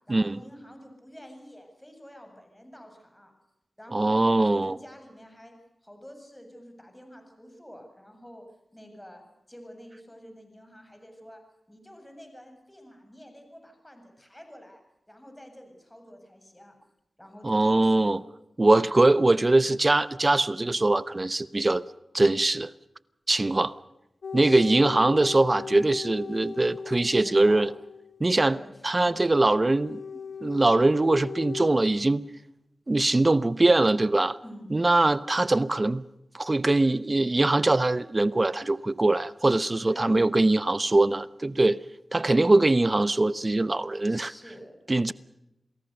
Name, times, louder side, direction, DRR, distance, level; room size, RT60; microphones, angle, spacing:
voice 1, 0.0-3.3 3.8-5.5 5.8-8.4 8.7-9.2 9.5-11.4 11.7-14.8 15.1-16.8 17.2-18.2 18.8-19.0 24.4-24.8 27.1-27.7 28.3-28.9 32.9-33.1 34.4-34.7 39.8-40.4 44.1-44.8, equal, 10° left, 7.5 m, -47 dB
voice 2, 3.9-4.8 17.4-18.2 18.6-21.8 22.1-22.7 23.3-23.7 24.3-27.7 28.2-28.6 28.8-30.0 30.4-32.2 32.9-34.4 34.7-36.0 36.3-41.8 42.1-44.3 44.9-45.1, right 2 dB, 35° right, 0.9 m, -22 dB
sound 1, 24.2-28.2 29.5-31.7, left 5 dB, 80° left, 1.3 m, -38 dB
29.0 x 20.0 x 6.7 m
cardioid pair, 45°, 0 cm